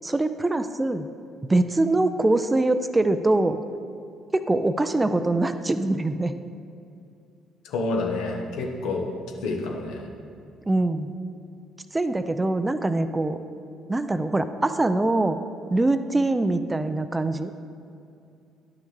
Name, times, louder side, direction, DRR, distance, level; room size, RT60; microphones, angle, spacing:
voice 1, 0.0-1.1 1.5-3.6 4.3-6.3 10.7-11.1 11.9-13.4 13.9-15.4 15.7-17.5, right 2 dB, 20° right, 10 dB, 0.4 m, -23 dB
voice 2, 7.6-9.0 9.4-10.1, left 3 dB, 65° left, 1 dB, 1.1 m, -28 dB
11.0 x 6.1 x 3.3 m, 2.5 s
figure-of-eight pair, 50°, 0 cm